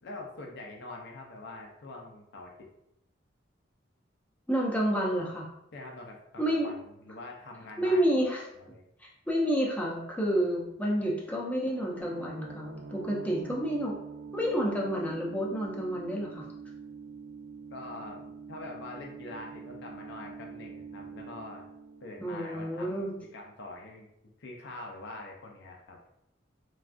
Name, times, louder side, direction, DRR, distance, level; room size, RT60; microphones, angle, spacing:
voice 1, 0.0-2.7 5.7-8.0 8.5-8.8 17.7-21.6 22.0-24.1 24.4-26.0, left 2 dB, 65° left, 0 dB, 0.5 m, -44 dB
voice 2, 4.5-5.5 6.4-6.7 7.8-8.4 9.0-13.9 14.3-16.4 22.2-23.2, equal, 10° left, -3 dB, 0.6 m, -29 dB
sound 1, 11.7-23.2, right 5 dB, 60° right, 0.3 m, -45 dB
3.3 x 2.3 x 2.5 m, 0.79 s
head